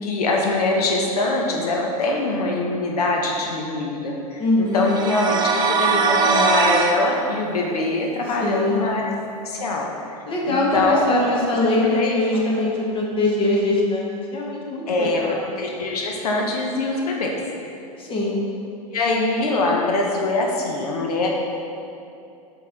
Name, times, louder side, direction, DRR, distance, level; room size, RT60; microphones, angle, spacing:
voice 1, 0.0-4.4 4.7-9.1 9.4-10.0 10.5-11.2 11.8-12.4 14.9-17.4 18.9-21.3, left 2 dB, 80° left, 0 dB, 0.8 m, -23 dB
voice 2, 4.4-5.0 8.4-9.0 10.3-15.4 18.0-18.5, left 2 dB, 25° left, -3 dB, 1.4 m, -22 dB
sound 1, 4.8-7.0, right 4 dB, 20° right, 0.6 m, -20 dB
6.3 x 5.3 x 3.8 m, 2.7 s
hypercardioid pair, 105°, 19 cm